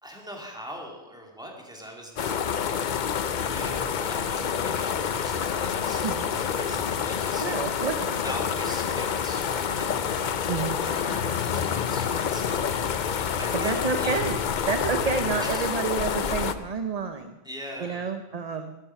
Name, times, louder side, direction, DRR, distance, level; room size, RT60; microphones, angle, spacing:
voice 1, 0.0-2.4 3.2-7.6 8.2-10.4 10.8-13.0 13.4-14.1 15.4-15.7 17.4-18.1, equal, 5° right, -1 dB, 2.6 m, -41 dB
sound 1, 2.2-16.5, left 7 dB, 50° left, 0.6 m, -28 dB
sound 2, 3.3-15.6, left 2 dB, 75° left, 3.2 m, -42 dB
voice 2, 7.4-8.2 10.5-10.8 13.5-14.3 14.7-17.3 17.8-18.7, right 5 dB, 40° right, 7 dB, 0.7 m, -29 dB
13.0 x 12.0 x 5.7 m, 0.99 s
omnidirectional pair, 1.2 m